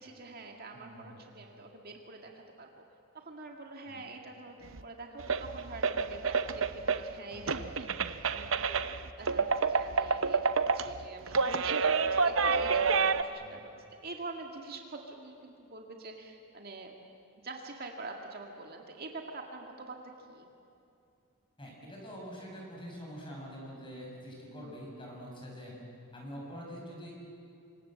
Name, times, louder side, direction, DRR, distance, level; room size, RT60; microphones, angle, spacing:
voice 1, 0.0-2.8 3.1-8.8 9.2-17.0 17.4-20.5 24.5-24.8, right 3 dB, 45° right, 2 dB, 2.0 m, -46 dB
voice 2, 0.7-1.2 3.9-4.0 7.3-7.6 13.4-13.6 21.6-25.7 26.1-27.1, equal, 25° left, -2 dB, 6.9 m, -45 dB
sound 1, 4.8-4.9 5.2-7.1 7.5-13.2, right 5 dB, 60° right, 0.8 m, -29 dB
27.0 x 25.5 x 7.7 m, 2.6 s
head